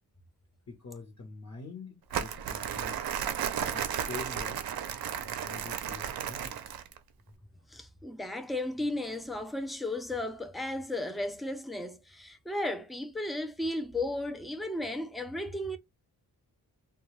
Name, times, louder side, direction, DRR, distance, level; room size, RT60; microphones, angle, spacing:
voice 1, 0.7-3.0 3.6-4.7 5.2-6.6, left 3 dB, 40° left, 0.8 m, -45 dB
Crumpling crinkling, 2.1-7.0, right 9 dB, 65° right, 0.5 m, -34 dB
voice 2, 7.7-15.8, left 1 dB, ahead, 0.3 m, -34 dB
2.2 x 2.2 x 3.0 m
wide cardioid pair, 120°, 38 cm